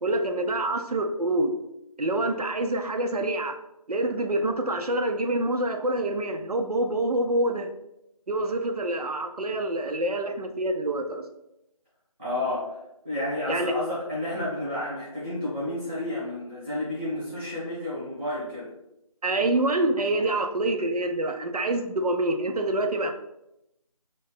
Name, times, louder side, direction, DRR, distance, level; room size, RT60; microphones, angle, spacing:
voice 1, 0.0-1.5 2.0-3.5 3.9-7.7 8.3-11.2 13.5-13.7 19.2-23.1, right 1 dB, 85° right, 5 dB, 0.6 m, -26 dB
voice 2, 12.2-12.8 13.0-18.7, left 1 dB, 5° right, -13 dB, 0.8 m, -31 dB
2.8 x 2.5 x 3.6 m, 0.85 s
figure-of-eight pair, 170°, 19 cm